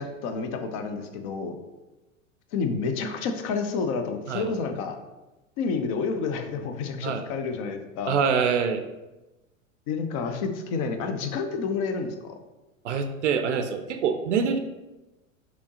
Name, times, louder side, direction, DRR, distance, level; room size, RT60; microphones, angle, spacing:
voice 1, 0.0-1.6 2.5-5.0 5.6-8.2 9.9-12.3, left 5 dB, 30° left, 6 dB, 0.4 m, -29 dB
voice 2, 8.1-8.8 12.8-14.6, right 6 dB, 60° right, 7 dB, 0.5 m, -25 dB
6.1 x 2.9 x 2.8 m, 1.1 s
figure-of-eight pair, 90°, 41 cm